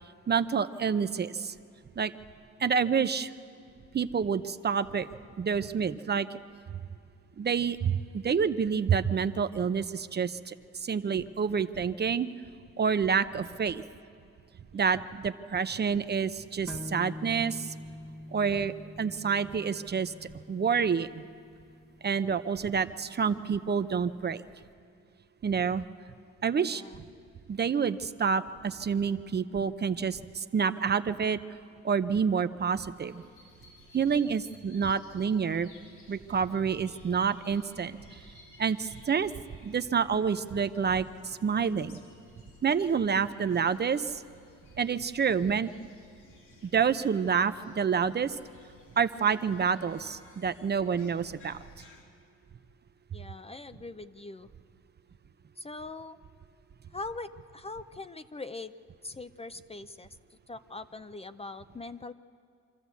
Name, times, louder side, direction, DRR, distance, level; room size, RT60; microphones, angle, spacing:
voice 1, 0.3-1.5 2.0-2.1 2.6-3.3 3.9-5.1 5.4-6.4 7.4-10.5 10.8-12.3 12.8-13.8 14.7-17.7 18.3-21.2 22.0-24.4 25.4-25.8 26.4-26.8 27.5-31.4 31.8-33.2 33.9-35.7 36.1-38.2 38.6-39.3 39.6-42.0 42.6-44.2 44.8-45.7 46.6-48.4 49.0-51.6, right 6 dB, 35° right, 12 dB, 0.7 m, -28 dB
voice 2, 14.7-15.1 26.6-27.0 53.1-54.5 55.6-56.2 56.9-58.7 59.0-62.1, left 3 dB, 20° left, 11 dB, 0.6 m, -42 dB
sound 1, 16.7-24.2, left 1 dB, ahead, 1.0 m, -45 dB
sound 2, 32.9-52.0, left 2 dB, 80° left, 3.9 m, -57 dB
25.5 x 13.5 x 8.3 m, 2.3 s
cardioid pair, 90°, 30 cm